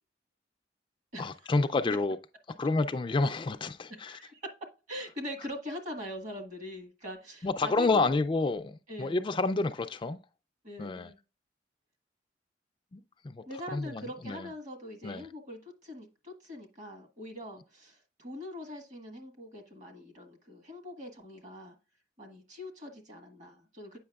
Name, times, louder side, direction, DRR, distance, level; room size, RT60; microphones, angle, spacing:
voice 1, 1.2-2.2 2.6-4.2 7.4-10.2 10.8-11.1 12.9-13.4 13.7-14.5 15.0-15.3, left 3 dB, 25° left, 0.3 m, -29 dB
voice 2, 4.0-4.5 4.9-8.2 8.9-9.2 10.6-11.2 13.5-21.7 22.2-24.0, left 1 dB, 40° right, 1.5 m, -43 dB
8.5 x 5.7 x 2.3 m
head